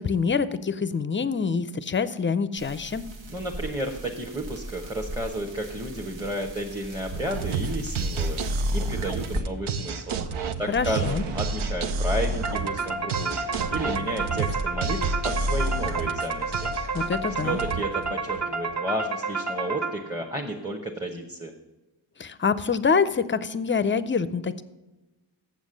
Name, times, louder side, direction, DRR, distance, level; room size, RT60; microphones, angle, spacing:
voice 1, 0.0-3.0 10.7-11.2 16.9-17.6 22.2-24.6, left 5 dB, 25° left, 14 dB, 0.5 m, -25 dB
sound 1, 2.6-9.4, right 1 dB, 65° right, 1.4 m, -38 dB
voice 2, 3.3-8.4 8.7-10.2 10.6-16.7 17.4-21.5, right 1 dB, 10° right, 1 dB, 0.9 m, -32 dB
sound 2, 7.1-18.8, right 3 dB, 90° right, 0.7 m, -30 dB
sound 3, 12.4-20.3, right 3 dB, 35° right, 0.9 m, -30 dB
7.5 x 7.3 x 6.3 m, 1.1 s
wide cardioid pair, 105°, 47 cm